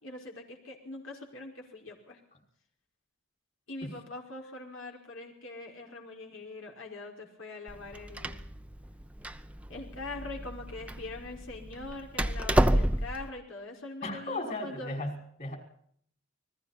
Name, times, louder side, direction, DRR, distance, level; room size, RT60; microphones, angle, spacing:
voice 1, 0.0-2.2 3.7-8.5 9.7-14.9, left 2 dB, 80° left, 1 dB, 5.3 m, -43 dB
Door, 7.7-13.3, right 1 dB, 5° right, 0.9 m, -30 dB
voice 2, 14.0-15.6, left 2 dB, 40° left, 3 dB, 5.8 m, -36 dB
29.5 x 21.5 x 4.3 m, 0.63 s
head